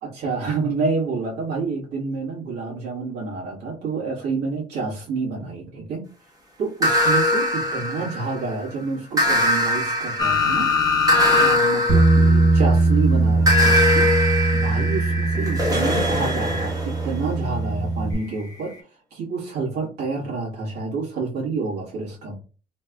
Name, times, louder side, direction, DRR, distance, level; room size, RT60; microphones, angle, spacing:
voice 1, 0.0-6.0 6.6-10.7 11.3-14.1 14.5-18.7 19.1-22.3, right 4 dB, 80° right, -4 dB, 1.6 m, -28 dB
sound 1, 6.8-8.5 9.2-12.9 13.5-17.2, left 1 dB, 20° right, 1.4 m, -22 dB
sound 2, 10.2-11.6 11.9-12.0 13.6-16.7 18.4-18.5, left 5 dB, 20° left, 1.1 m, -25 dB
Bass guitar, 11.9-18.1, right 2 dB, 35° right, 0.8 m, -20 dB
3.3 x 3.0 x 2.3 m, 0.36 s
cardioid pair, 110°, 17 cm